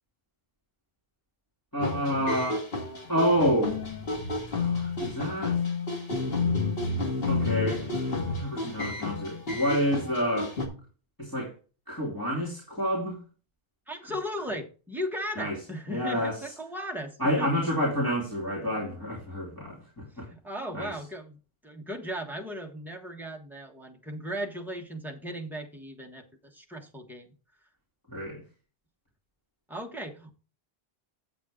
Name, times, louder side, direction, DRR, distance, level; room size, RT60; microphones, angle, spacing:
voice 1, 1.7-2.6 3.1-3.8 4.5-5.6 7.3-7.9 8.2-10.5 11.2-11.5 11.9-13.2 15.4-15.6 15.9-16.5 17.2-20.3 20.7-21.0 28.1-28.4, equal, 20° left, -5 dB, 2.8 m, -28 dB
sound 1, 1.8-10.7, left 3 dB, 70° left, 2.0 m, -30 dB
voice 2, 13.9-17.5 18.9-19.0 20.3-21.4 21.6-26.2 26.5-27.3 29.7-30.3, equal, ahead, 0 dB, 1.3 m, -37 dB
8.4 x 7.9 x 3.7 m, 0.36 s
omnidirectional pair, 1.0 m